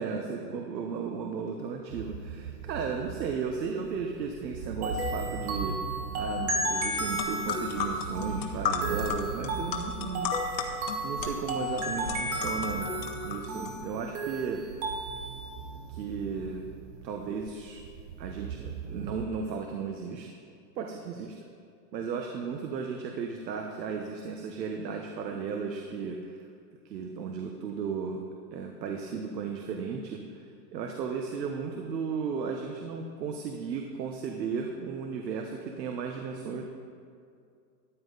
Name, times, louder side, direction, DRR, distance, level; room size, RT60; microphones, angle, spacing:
voice 1, 0.0-5.8 6.1-10.7 11.0-12.9 13.2-14.6 15.9-16.7 17.0-17.8 18.2-20.3 20.7-21.3 21.9-26.4 26.8-28.2 28.5-36.6, right 5 dB, 80° right, 3 dB, 1.2 m, -35 dB
sound 1, 1.9-19.3, right 6 dB, 40° right, 0.5 m, -41 dB
sound 2, 4.8-15.5, right 1 dB, 15° right, 0.9 m, -34 dB
sound 3, 6.8-6.9 7.1-13.7, left 6 dB, 85° left, 1.6 m, -34 dB
13.5 x 9.4 x 4.0 m, 2.3 s
supercardioid pair, 170°, 50 cm